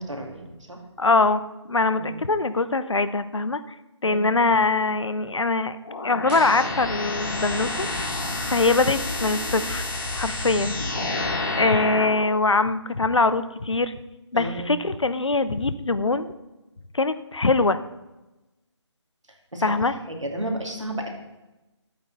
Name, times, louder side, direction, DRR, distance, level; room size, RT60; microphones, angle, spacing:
voice 1, 0.0-0.8 1.9-2.2 4.0-4.3 14.3-14.8 19.5-19.7 20.1-21.1, right 1 dB, 90° right, 2 dB, 2.7 m, -32 dB
voice 2, 1.0-1.4 1.7-3.6 4.0-5.8 6.0-8.1 8.5-9.9 10.1-10.7 11.6-13.9 14.3-16.3 16.9-17.8 19.6-19.9, left 3 dB, 75° left, 12 dB, 0.8 m, -22 dB
sound 1, 5.8-12.3, left 2 dB, 45° left, 2.1 m, -29 dB
sound 2, 6.2-7.3 7.6-7.7, equal, 20° right, 2.2 m, -42 dB
12.5 x 8.6 x 4.2 m, 1.0 s
figure-of-eight pair, 155°, 15 cm